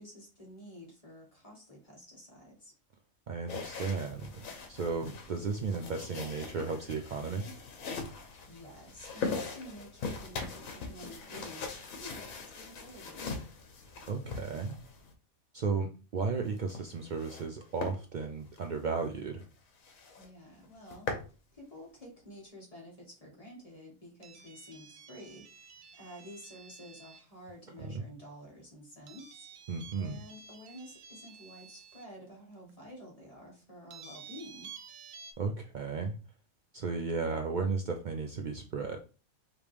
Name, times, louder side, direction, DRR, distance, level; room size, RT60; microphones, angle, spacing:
voice 1, 0.0-2.7 8.5-13.3 20.2-21.1 21.5-25.7 26.0-29.7 30.0-34.7, left 1 dB, 25° left, -3 dB, 1.8 m, -50 dB
voice 2, 3.3-4.4 4.7-7.5 14.1-14.8 15.5-19.4 27.8-28.1 29.7-30.2 35.4-36.2 36.7-39.0, right 4 dB, 85° right, 4 dB, 0.4 m, -34 dB
sound 1, 3.5-15.1 16.4-17.5 17.8-18.0 18.5-18.6 19.0-19.1 19.4-19.5 19.8-20.3 20.6-21.3, left 4 dB, 75° left, 1.3 m, -41 dB
sound 2, 24.2-27.3 29.1-32.0 32.7-32.8 33.9-35.3, right 6 dB, 70° right, 1.1 m, -51 dB
5.0 x 3.0 x 3.3 m, 0.34 s
omnidirectional pair, 1.5 m